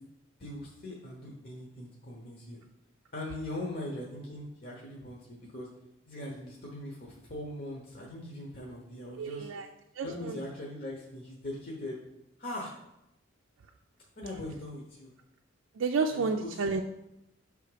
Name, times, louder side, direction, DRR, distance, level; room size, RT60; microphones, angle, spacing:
voice 1, 0.4-2.6 3.1-5.7 6.1-9.5 10.0-12.0 12.4-12.7 14.2-15.1 16.1-16.8, left 1 dB, 45° left, -2 dB, 1.0 m, -40 dB
voice 2, 9.2-9.7 10.0-10.4 15.8-16.8, right 4 dB, 70° right, 3 dB, 0.4 m, -30 dB
6.8 x 3.5 x 4.9 m, 0.88 s
head